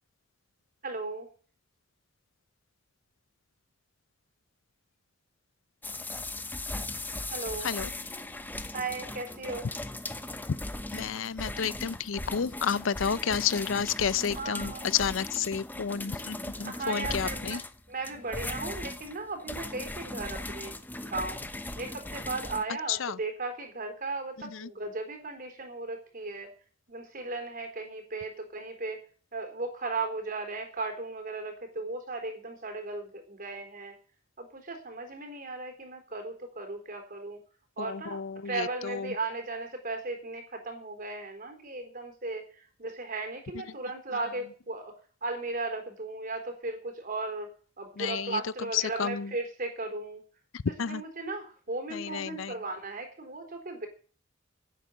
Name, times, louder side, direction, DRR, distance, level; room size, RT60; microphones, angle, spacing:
voice 1, 0.8-1.3 7.3-7.7 8.7-9.7 14.2-14.9 16.6-17.6 17.9-20.8 21.0-21.4 21.8-26.5 26.9-29.0 29.3-33.9 34.4-37.4 37.8-44.9 45.2-47.5 47.8-50.2 50.8-53.9, right 3 dB, 45° right, 3.9 m, -36 dB
sound 1, 5.8-22.6, left 2 dB, 10° left, 0.9 m, -38 dB
voice 2, 10.9-17.6 22.9-23.2 24.4-24.7 37.8-39.1 48.0-48.4 48.7-49.3 50.5-51.0 51.9-52.5, left 7 dB, 85° left, 0.6 m, -31 dB
11.0 x 9.0 x 9.0 m
head